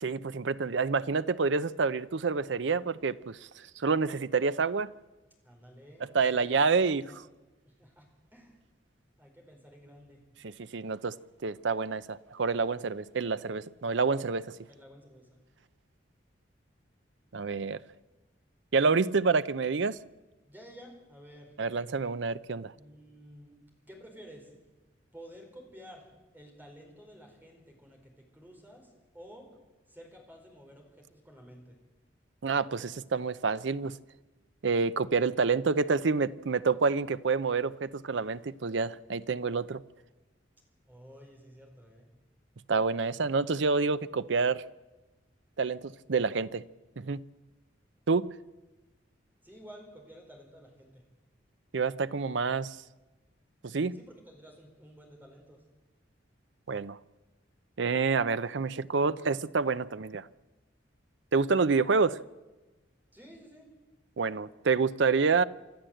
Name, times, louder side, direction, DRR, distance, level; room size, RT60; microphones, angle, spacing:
voice 1, 0.0-3.4 3.8-4.9 6.1-7.0 10.4-11.2 11.4-14.5 17.3-17.8 18.7-20.0 21.6-22.7 32.4-34.0 34.6-39.8 42.7-44.6 45.6-46.6 47.0-47.2 48.1-48.3 51.7-52.8 53.6-54.0 56.7-57.0 57.8-60.3 61.3-62.2 64.2-65.4, right 4 dB, 70° right, 0.6 m, -28 dB
voice 2, 5.4-7.2 7.6-8.6 9.2-10.2 14.7-15.4 20.5-21.6 22.7-23.6 23.9-24.5 25.1-26.1 26.3-29.5 29.9-31.8 40.9-42.1 49.4-51.0 53.9-55.6 63.1-63.7, equal, 10° right, 4.7 m, -52 dB
26.0 x 13.0 x 7.8 m
head